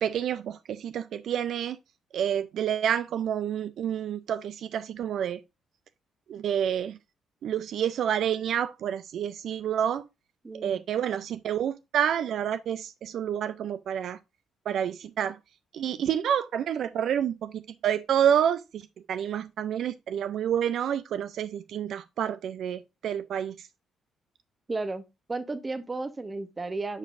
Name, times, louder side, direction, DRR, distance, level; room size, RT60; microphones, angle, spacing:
voice 1, 0.0-1.8 2.1-5.4 6.3-7.0 7.4-10.0 10.6-14.2 14.7-15.4 15.7-23.7, right 9 dB, 70° right, 0.3 m, -28 dB
voice 2, 10.4-10.8 24.7-27.0, right 3 dB, 25° right, 0.8 m, -34 dB
10.0 x 5.2 x 2.5 m
cardioid pair, 90°, 0 cm